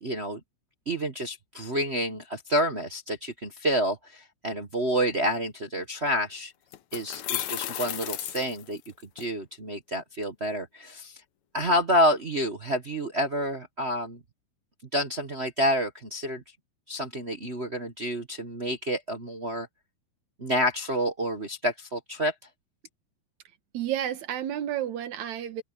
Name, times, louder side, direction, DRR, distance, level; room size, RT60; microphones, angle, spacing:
voice 1, 0.0-0.4 0.9-6.5 6.9-8.8 9.1-11.2 11.5-14.2 14.9-16.4 16.9-19.7 20.4-22.3, equal, 55° right, 0.7 m, -28 dB
sound 1, 6.1-6.2 6.7-9.2, left 12 dB, 75° left, 2.3 m, -34 dB
voice 2, 23.7-25.6, right 11 dB, 75° right, 2.6 m, -31 dB
omnidirectional pair, 3.4 m